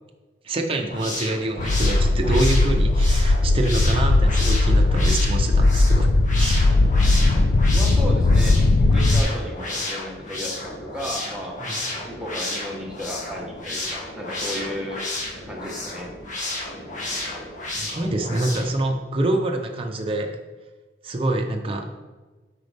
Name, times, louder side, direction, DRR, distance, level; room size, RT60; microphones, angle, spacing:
voice 1, 0.4-6.1 6.4-6.7 11.6-11.8 17.8-20.3 21.0-21.9, right 2 dB, 30° right, 3 dB, 0.6 m, -26 dB
sound 1, 0.7-18.8, left 2 dB, 45° left, 1.8 m, -32 dB
sound 2, 1.6-9.2, left 2 dB, 75° left, 0.5 m, -18 dB
voice 2, 7.7-11.6 12.1-15.0 15.4-16.1, equal, 5° right, -2 dB, 1.2 m, -34 dB
8.1 x 5.1 x 3.5 m, 1.2 s
head